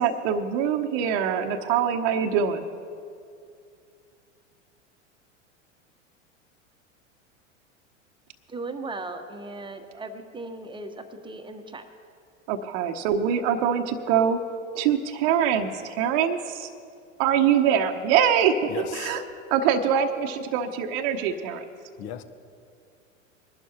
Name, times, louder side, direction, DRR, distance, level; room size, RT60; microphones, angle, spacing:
voice 1, 0.0-2.6 12.5-14.4 14.7-16.7 17.2-19.2 19.5-21.6, right 8 dB, 50° right, 4 dB, 0.8 m, -24 dB
voice 2, 8.5-11.9, right 2 dB, 10° right, 7 dB, 1.0 m, -37 dB
voice 3, 18.7-19.2 22.0-22.2, left 9 dB, 40° left, 11 dB, 0.9 m, -36 dB
21.0 x 11.5 x 2.9 m, 2.4 s
hypercardioid pair, 95°, 39 cm